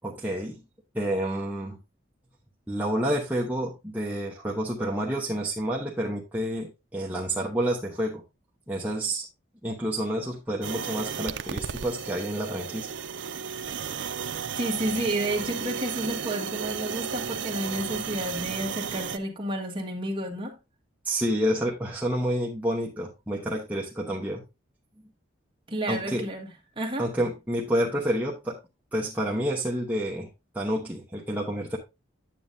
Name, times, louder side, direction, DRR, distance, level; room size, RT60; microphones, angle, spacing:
voice 1, 0.0-0.6 0.9-1.8 2.7-8.2 8.7-9.3 9.6-12.9 21.0-24.4 25.9-26.2 27.0-28.6 28.9-30.3 30.5-31.8, right 1 dB, 10° right, 0.9 m, -29 dB
sound 1, 10.6-19.2, right 7 dB, 70° right, 0.5 m, -34 dB
voice 2, 14.6-20.6 25.7-26.5 26.8-27.1, right 1 dB, 25° right, 1.5 m, -31 dB
9.2 x 7.9 x 2.6 m
head